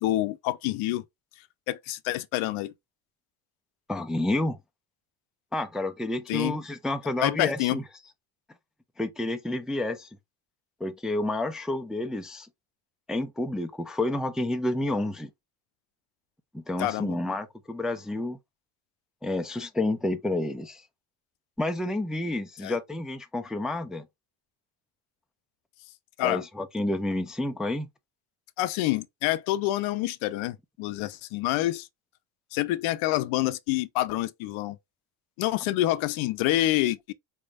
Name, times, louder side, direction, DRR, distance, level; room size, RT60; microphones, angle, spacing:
voice 1, 0.0-1.0 1.7-2.7 6.3-6.6 7.2-7.8 16.8-17.2 22.6-22.8 26.2-26.4 28.6-31.9 32.5-34.8 35.4-37.1, left 15 dB, 70° left, 0.7 m, -27 dB
voice 2, 3.9-4.6 5.5-7.8 9.0-10.1 10.8-12.5 13.1-15.3 16.5-18.4 19.2-20.8 21.6-24.1 26.2-27.9, left 1 dB, ahead, 0.4 m, -29 dB
4.4 x 3.5 x 2.4 m
supercardioid pair, 85°, 49 cm